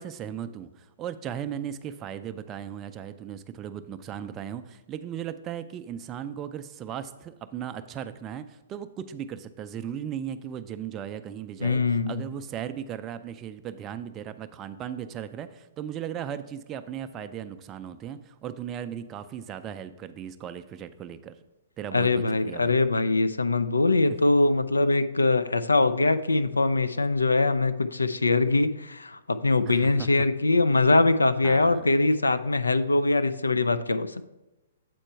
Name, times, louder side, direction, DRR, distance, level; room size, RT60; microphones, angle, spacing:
voice 1, 0.0-21.3 21.8-22.8 29.7-30.1 31.4-31.8, right 9 dB, 25° right, 10 dB, 0.4 m, -37 dB
voice 2, 11.6-12.2 21.9-34.3, left 3 dB, 85° left, 11 dB, 0.3 m, -23 dB
7.7 x 4.4 x 4.4 m, 1.0 s
figure-of-eight pair, 120°, 0 cm